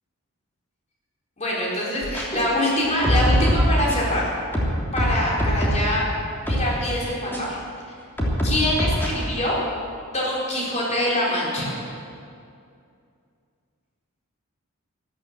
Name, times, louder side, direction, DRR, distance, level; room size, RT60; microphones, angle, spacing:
voice 1, 1.4-4.2 4.9-6.0 6.4-7.6 8.4-9.6 10.1-11.7, left 1 dB, 30° left, -5 dB, 4.5 m, -24 dB
sound 1, 2.0-2.2 2.8-4.1 4.5-5.9 6.5-6.7 7.3-7.4 8.2-9.1, equal, 10° left, 3.0 m, -22 dB
13.5 x 13.0 x 7.6 m, 2.4 s
head